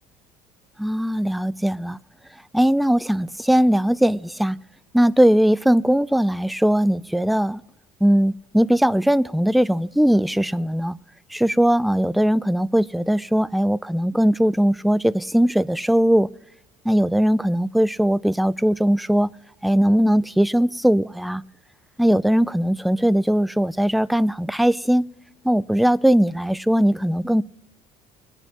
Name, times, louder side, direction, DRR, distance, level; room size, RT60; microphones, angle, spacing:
voice 1, 0.8-2.0 2.5-4.6 4.9-7.6 8.0-11.0 11.3-16.3 16.9-19.3 19.6-21.4 22.0-25.0 25.4-27.4, equal, ahead, 0.3 m, -19 dB
21.0 x 9.1 x 2.9 m
supercardioid pair, 90°, 16 cm